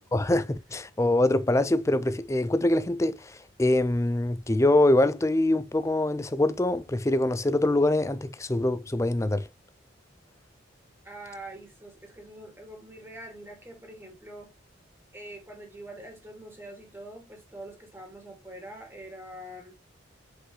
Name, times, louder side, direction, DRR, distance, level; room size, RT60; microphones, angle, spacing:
voice 1, 0.1-9.5, left 1 dB, 15° left, 0.4 m, -24 dB
voice 2, 11.0-14.5 15.1-19.8, right 1 dB, 10° right, 2.3 m, -44 dB
6.0 x 5.3 x 3.2 m
head